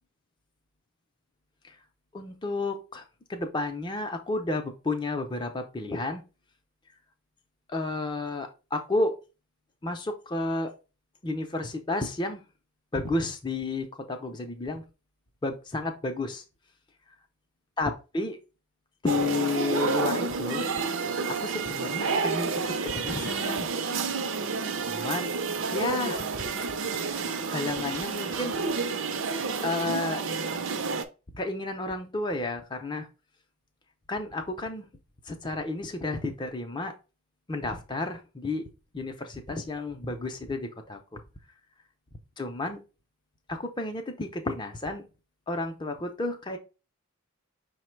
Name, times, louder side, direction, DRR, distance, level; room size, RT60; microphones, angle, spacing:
voice 1, 2.1-3.0 3.3-6.2 7.7-9.1 9.8-10.7 11.2-12.4 12.9-14.8 15.4-16.4 17.8-18.4 19.0-20.6 21.1-23.7 24.8-25.3 25.7-26.5 27.5-28.6 29.6-30.2 31.3-33.1 34.1-34.9 35.3-36.9 37.5-38.6 38.9-41.2 42.4-42.8 43.5-45.0 45.5-46.6, left 2 dB, 20° left, 4 dB, 0.5 m, -31 dB
sound 1, 19.1-31.0, right 4 dB, 55° right, 0.5 m, -30 dB
5.7 x 2.1 x 4.4 m, 0.31 s
head